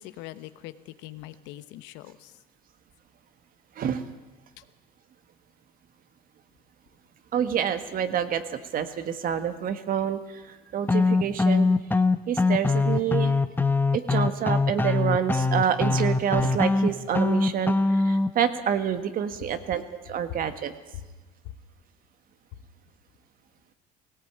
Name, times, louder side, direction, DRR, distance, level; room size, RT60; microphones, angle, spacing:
voice 1, 0.0-2.3 20.3-20.4 21.0-21.1 21.4-21.5, left 14 dB, 75° left, 13 dB, 1.1 m, -41 dB
voice 2, 7.3-11.7 12.3-13.4 13.9-20.7, right 8 dB, 50° right, 10 dB, 1.6 m, -28 dB
sound 1, 10.9-18.3, left 3 dB, 10° left, 0.9 m, -23 dB
18.0 x 17.0 x 8.9 m, 1.2 s
supercardioid pair, 100°, 19 cm